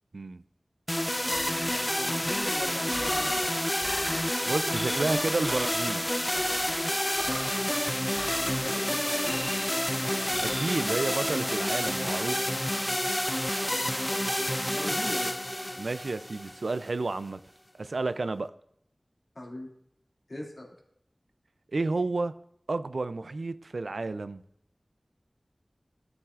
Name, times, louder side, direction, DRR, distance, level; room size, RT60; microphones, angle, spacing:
sound 1, 0.9-16.9, equal, 15° left, 0.3 m, -29 dB
voice 1, 1.1-3.4 8.5-9.7 13.6-13.9 14.6-15.5 19.3-19.7 20.3-20.7, left 1 dB, 65° left, 2.2 m, -40 dB
sound 2, 1.3-1.9 2.2-3.5 3.8-4.3 4.7-5.2 5.4-5.9 6.3-6.8 7.2-7.6 8.2-8.7 9.2-9.8 10.3-10.8, left 1 dB, 30° left, 1.3 m, -39 dB
voice 2, 4.4-6.0 10.4-12.4 15.8-17.4 17.8-18.5 21.7-22.3 22.7-24.4, right 3 dB, 90° right, 0.4 m, -31 dB
13.0 x 7.2 x 2.4 m
wide cardioid pair, 55°, 0 cm